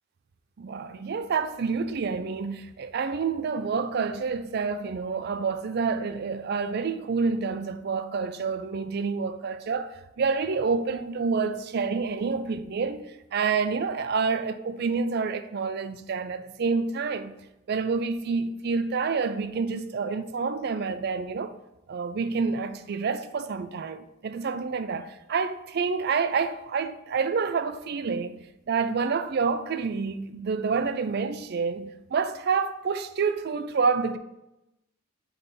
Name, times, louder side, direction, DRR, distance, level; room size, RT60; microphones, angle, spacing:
voice 1, 0.6-9.9 10.2-17.3 17.7-21.5 21.9-34.2, right 5 dB, 55° right, 0.4 m, -28 dB
7.9 x 3.3 x 4.2 m
head